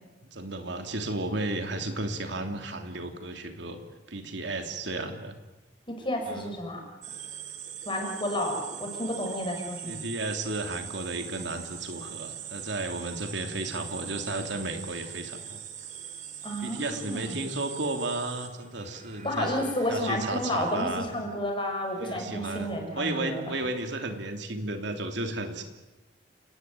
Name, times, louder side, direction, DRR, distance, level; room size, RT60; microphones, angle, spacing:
voice 1, 0.2-3.8 4.1-5.4 6.3-6.5 9.8-15.6 16.6-19.5 19.9-21.1 21.9-25.6, right 2 dB, 65° right, 5 dB, 2.9 m, -33 dB
voice 2, 5.9-6.8 7.8-10.0 16.4-17.4 19.2-23.4, left 1 dB, 25° left, 2 dB, 6.4 m, -31 dB
sound 1, 7.0-20.9, right 8 dB, 40° right, 3.0 m, -42 dB
29.5 x 19.0 x 9.5 m, 1.1 s
head